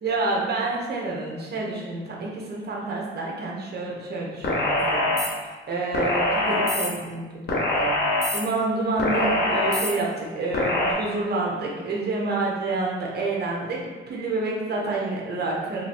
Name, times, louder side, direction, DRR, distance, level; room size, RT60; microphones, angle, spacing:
voice 1, 0.0-5.1 5.7-13.8 14.1-15.8, right 3 dB, 50° right, -2 dB, 1.1 m, -28 dB
sound 1, 4.4-5.3 5.9-6.9 7.5-8.4 9.0-9.9 10.5-10.9, left 1 dB, 55° left, 1.2 m, -23 dB
3.0 x 2.7 x 4.3 m, 1.3 s
supercardioid pair, 65°, 21 cm